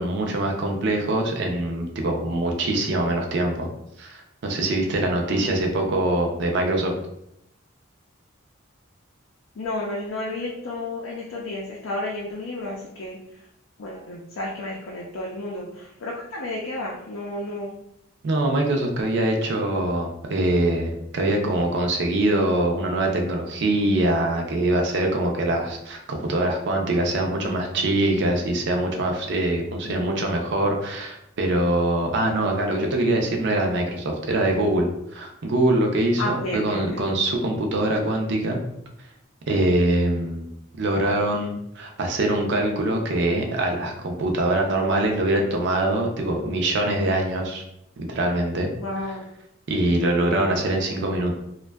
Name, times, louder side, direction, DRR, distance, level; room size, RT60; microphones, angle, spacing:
voice 1, 0.0-3.7 4.0-6.9 18.2-38.6 39.5-40.5 40.8-47.6 48.0-48.7 49.7-51.3, right 1 dB, 60° right, 2 dB, 0.4 m, -23 dB
voice 2, 5.2-5.6 9.6-13.2 13.8-17.8 29.8-30.1 36.2-37.0 48.8-49.3, left 2 dB, 75° left, -3 dB, 0.4 m, -32 dB
2.5 x 2.2 x 2.2 m, 0.78 s
head